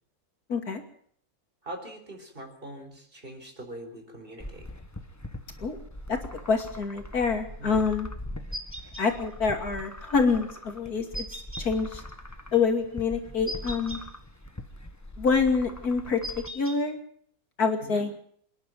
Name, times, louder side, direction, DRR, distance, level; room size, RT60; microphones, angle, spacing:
voice 1, 0.5-0.8 5.6-5.8 6.1-6.2 6.5-8.1 9.0-11.3 11.6-12.0 12.5-14.0 15.2-17.0 17.6-18.1, left 5 dB, 80° left, 5 dB, 3.1 m, -26 dB
voice 2, 1.6-4.7 7.6-7.8 17.8-18.0, right 1 dB, 35° right, 4 dB, 4.6 m, -42 dB
sound 1, 4.4-16.5, left 1 dB, 10° left, 1.4 m, -42 dB
sound 2, 8.5-9.1 11.1-11.7 13.5-14.0 16.2-16.8, equal, 10° right, 2.9 m, -37 dB
26.5 x 10.5 x 9.3 m, 0.63 s
omnidirectional pair, 1.6 m